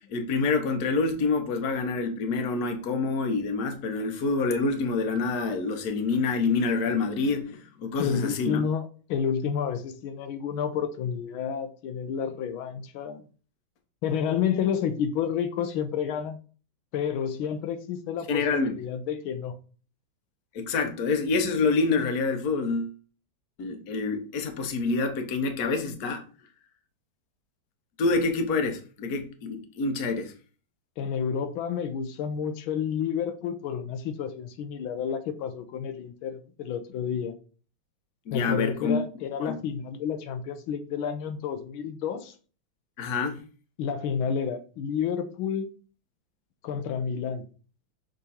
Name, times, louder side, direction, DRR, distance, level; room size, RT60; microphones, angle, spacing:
voice 1, 0.1-8.6 18.3-18.7 20.5-22.9 23.6-26.2 28.0-30.3 38.3-39.0 39.4-39.6 43.0-43.4, left 4 dB, 55° left, 1.3 m, -27 dB
voice 2, 8.0-13.2 14.0-16.4 16.9-19.6 31.0-37.4 38.3-42.3 43.8-45.7 46.6-47.5, left 7 dB, 85° left, 1.5 m, -30 dB
6.7 x 3.8 x 4.2 m
omnidirectional pair, 2.2 m